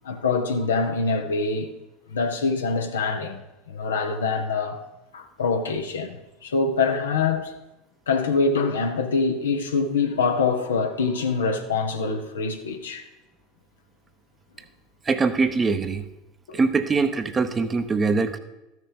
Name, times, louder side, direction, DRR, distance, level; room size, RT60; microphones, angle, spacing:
voice 1, 0.0-1.7 2.1-4.8 5.1-7.5 8.1-13.1 16.5-16.6, left 4 dB, 80° left, 1.1 m, -25 dB
voice 2, 15.0-16.1 16.5-18.4, right 4 dB, 25° right, 0.9 m, -23 dB
13.5 x 6.4 x 5.2 m
hypercardioid pair, 80°, 0 cm